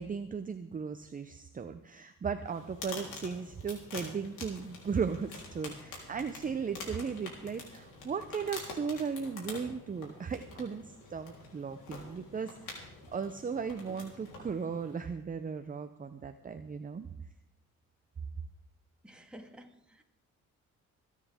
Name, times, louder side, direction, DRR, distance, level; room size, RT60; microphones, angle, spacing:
voice 1, 0.0-17.1, right 6 dB, 30° right, 8 dB, 0.7 m, -36 dB
sound 1, 2.4-15.1, left 3 dB, 90° left, 3.9 m, -47 dB
voice 2, 19.0-20.0, equal, 5° right, 2 dB, 2.0 m, -52 dB
27.0 x 9.3 x 3.7 m, 0.79 s
cardioid pair, 90°, 30 cm